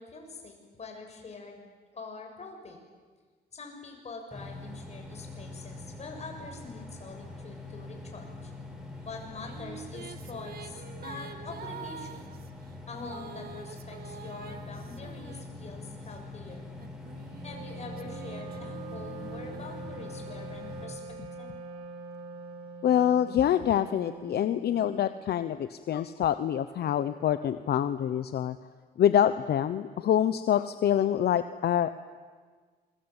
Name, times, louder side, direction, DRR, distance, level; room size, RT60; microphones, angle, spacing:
voice 1, 0.0-1.6 1.9-2.8 3.5-8.5 9.0-12.3 12.9-16.7 17.4-21.0 21.4-21.6, left 4 dB, 40° left, 3 dB, 6.9 m, -44 dB
sound 1, 4.3-20.9, left 2 dB, 5° right, 6.8 m, -44 dB
Female singing, 9.1-16.1 16.7-20.5, right 7 dB, 65° right, 1.7 m, -47 dB
Wind instrument woodwind instrument, 17.3-25.2, right 3 dB, 35° right, 6.6 m, -43 dB
voice 2, 22.8-28.6 29.0-31.9, left 10 dB, 70° left, 11 dB, 1.0 m, -26 dB
27.0 x 23.0 x 9.0 m, 1.5 s
cardioid pair, 115°, 17 cm